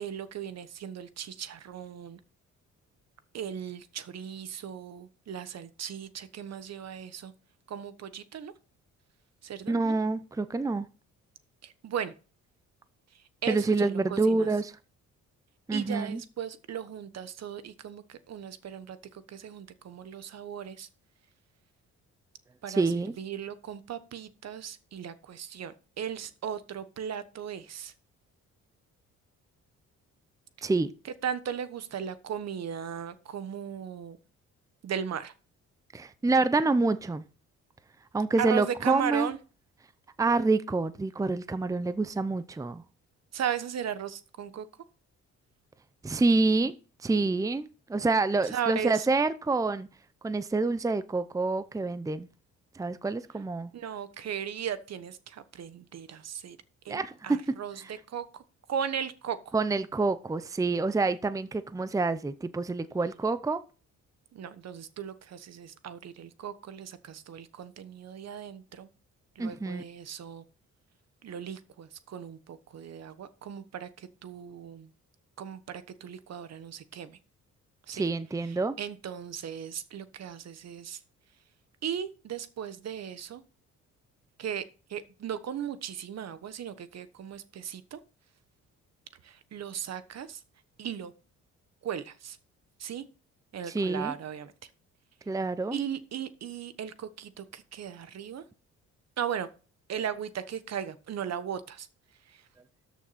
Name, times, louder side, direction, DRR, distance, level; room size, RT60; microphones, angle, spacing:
voice 1, 0.0-2.2 3.3-7.3 7.7-8.5 9.4-10.0 11.6-12.1 13.1-14.5 15.7-20.9 22.6-27.9 31.2-34.2 34.8-35.3 38.4-39.4 43.3-44.7 48.5-49.1 53.7-56.6 56.8-58.4 58.7-59.5 64.3-68.9 69.3-70.4 71.2-74.9 75.4-77.2 77.9-78.1 78.4-81.0 81.8-83.4 84.4-84.6 84.9-88.0 89.2-90.4 90.8-91.1 91.8-92.4 92.8-93.0 93.5-94.5 95.7-98.4 99.2-99.5 99.9-101.9 102.3-102.4, right 8 dB, 60° right, 1.2 m, -37 dB
voice 2, 9.7-10.9 13.5-14.7 15.7-16.2 22.8-23.1 30.6-30.9 35.9-37.2 38.1-39.3 40.2-42.8 46.0-46.7 47.0-49.9 50.2-52.3 52.7-53.7 56.9-57.4 59.5-63.6 69.4-69.8 77.9-78.8 93.7-94.1 95.3-95.8, right 3 dB, 10° right, 0.6 m, -27 dB
13.0 x 6.2 x 4.2 m
cardioid pair, 90°, 30 cm